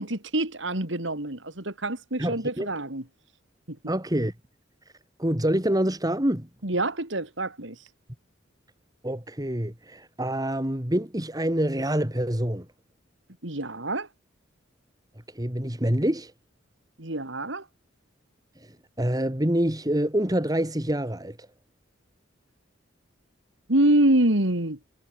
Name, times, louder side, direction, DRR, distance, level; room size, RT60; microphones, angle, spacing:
voice 1, 0.0-3.0 3.7-3.8 6.6-7.8 13.4-14.1 17.0-17.6 23.7-24.8, right 1 dB, 70° right, 3.4 m, -26 dB
voice 2, 2.2-2.7 3.9-4.3 5.2-6.5 9.0-12.7 15.3-16.3 19.0-21.4, right 1 dB, 20° right, 3.1 m, -26 dB
head